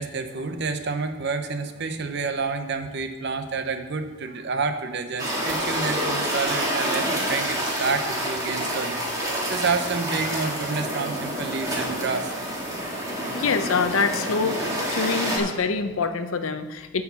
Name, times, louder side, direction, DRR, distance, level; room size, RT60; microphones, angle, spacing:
voice 1, 0.0-12.3, right 4 dB, 55° right, 7 dB, 0.7 m, -29 dB
sound 1, 5.2-15.4, equal, 15° right, 1.7 m, -28 dB
voice 2, 13.3-17.0, left 4 dB, 80° left, 9 dB, 0.7 m, -25 dB
9.7 x 4.8 x 6.9 m, 1.2 s
head